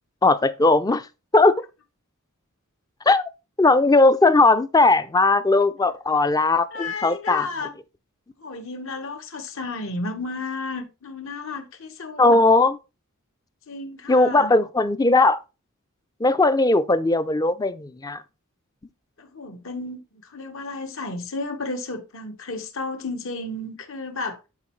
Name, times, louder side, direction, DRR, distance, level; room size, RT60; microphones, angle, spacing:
voice 1, 0.2-1.0 1.3-1.5 3.1-3.2 3.6-7.5 12.2-12.8 14.1-15.4 16.2-18.2, left 2 dB, 15° left, 0.5 m, -18 dB
voice 2, 6.7-7.8 8.4-12.4 13.7-14.5 19.2-24.5, left 3 dB, 65° left, 1.4 m, -32 dB
11.0 x 4.5 x 3.2 m
head